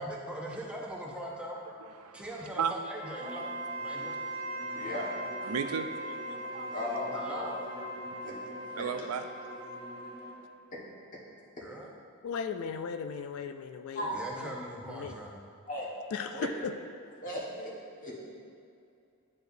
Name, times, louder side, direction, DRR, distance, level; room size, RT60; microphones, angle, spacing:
voice 1, 0.0-1.6 2.1-3.5 3.8-4.2 7.1-7.6 11.6-11.9 14.1-15.4, right 1 dB, 5° right, -2 dB, 0.7 m, -40 dB
voice 2, 1.6-2.3 2.6-2.7 3.9-4.1 4.6-4.9 5.4-6.7 8.8-9.2, right 7 dB, 80° right, 8 dB, 0.4 m, -36 dB
Wind instrument woodwind instrument, 2.8-10.3, right 1 dB, 30° right, 1.1 m, -40 dB
Bowed string instrument, 3.1-10.5, equal, 45° right, 1.3 m, -48 dB
voice 3, 4.7-5.1 6.7-7.6 8.2-8.4 8.7-8.9 10.7-10.8 11.1-11.2 13.9-14.2 15.7-15.9 16.3-16.5 17.2-17.7 18.0-18.3, left 1 dB, 40° left, -5 dB, 1.4 m, -36 dB
voice 4, 12.2-14.1 14.4-14.5 14.9-15.2 16.1-16.7, left 6 dB, 70° left, 9 dB, 0.3 m, -37 dB
10.5 x 4.7 x 2.6 m, 2.5 s
head